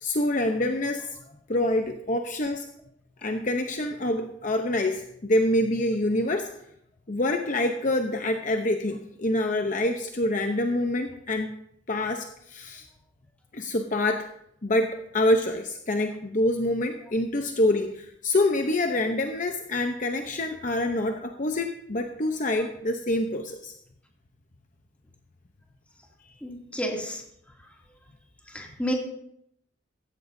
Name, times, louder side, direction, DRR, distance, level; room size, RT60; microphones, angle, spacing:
voice 1, 0.0-1.1 1.5-2.6 3.2-6.5 7.1-11.5 11.9-12.9 13.5-14.3 14.6-23.7, left 1 dB, 45° left, 5 dB, 0.8 m, -26 dB
voice 2, 26.4-27.2 28.5-28.9, equal, 5° left, -1 dB, 2.6 m, -30 dB
15.5 x 15.0 x 2.7 m, 0.74 s
head